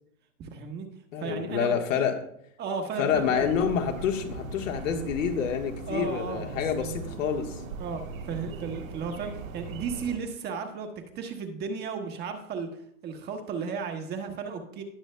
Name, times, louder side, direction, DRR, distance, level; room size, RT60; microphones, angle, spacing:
voice 1, 0.4-0.9 1.2-2.1 2.6-3.5 5.9-6.9 7.8-14.8, right 5 dB, 25° right, 5 dB, 1.1 m, -35 dB
voice 2, 1.1-2.1 3.0-7.6, left 7 dB, 70° left, 3 dB, 1.6 m, -28 dB
sound 1, 3.1-10.2, right 4 dB, 80° right, 1.5 m, -39 dB
18.0 x 6.2 x 2.2 m, 0.72 s
hypercardioid pair, 125°, 40 cm